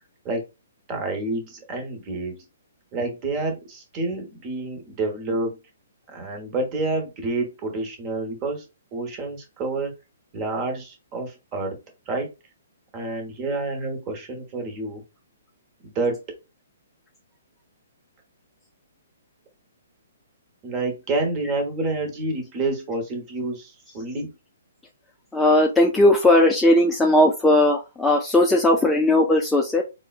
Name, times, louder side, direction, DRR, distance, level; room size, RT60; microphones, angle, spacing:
voice 1, 0.9-2.4 2.9-5.6 6.1-9.9 10.3-11.8 12.1-12.3 12.9-15.0 15.8-16.2 20.6-24.3, right 2 dB, 30° right, 4 dB, 0.9 m, -28 dB
voice 2, 25.3-29.8, left 1 dB, 5° left, 0 dB, 0.3 m, -18 dB
3.6 x 2.1 x 2.4 m, 0.27 s
hypercardioid pair, 145°, 0 cm